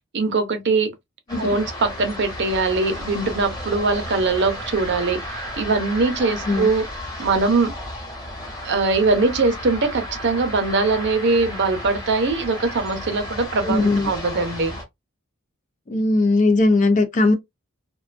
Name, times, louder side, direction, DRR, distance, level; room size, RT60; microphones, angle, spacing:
voice 1, 0.1-0.9 1.4-6.8 7.2-7.7 8.6-14.8, right 3 dB, 55° right, 0.6 m, -21 dB
sound 1, 1.3-14.8, left 1 dB, 15° left, 1.0 m, -33 dB
voice 2, 13.6-14.1 15.9-17.3, left 2 dB, 35° left, 0.4 m, -18 dB
2.5 x 2.2 x 2.4 m
head